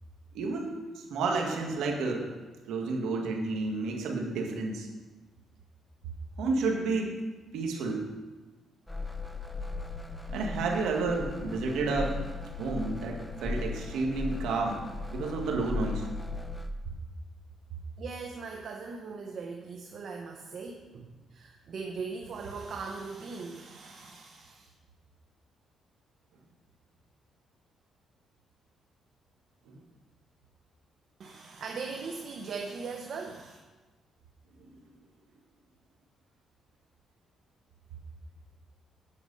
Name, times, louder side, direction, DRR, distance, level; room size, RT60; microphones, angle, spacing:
voice 1, 0.3-2.3 2.7-4.9 6.4-7.1 7.5-8.1 10.3-12.2 12.6-14.8 15.1-16.1 29.7-29.8 34.6-34.7, right 3 dB, 85° right, 1 dB, 1.8 m, -31 dB
sound 1, 8.9-16.7, left 3 dB, 5° left, 0.7 m, -37 dB
voice 2, 18.0-24.7 31.2-33.6, right 4 dB, 60° right, 2 dB, 0.9 m, -40 dB
9.3 x 7.0 x 5.5 m, 1.2 s
cardioid pair, 90°, 0 cm